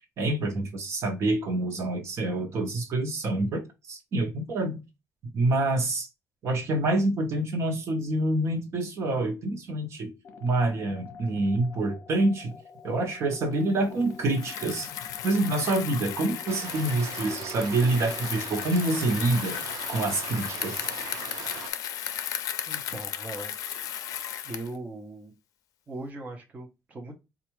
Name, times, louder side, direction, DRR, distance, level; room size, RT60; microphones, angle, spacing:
voice 1, 0.2-3.6 3.9-4.8 5.3-6.1 6.4-10.1 10.4-12.5 12.8-14.9 15.2-19.6 19.9-20.9, right 2 dB, 50° right, 0.9 m, -27 dB
sound 1, 10.2-18.2, left 4 dB, 40° left, 0.9 m, -46 dB
Bicycle, 14.2-24.8, left 10 dB, 75° left, 0.4 m, -35 dB
sound 2, 16.5-21.7, right 10 dB, 85° right, 0.4 m, -40 dB
voice 2, 22.7-23.5 24.4-25.3 25.9-27.2, right 2 dB, 25° right, 0.8 m, -39 dB
4.4 x 2.4 x 3.0 m
cardioid pair, 160°, 6 cm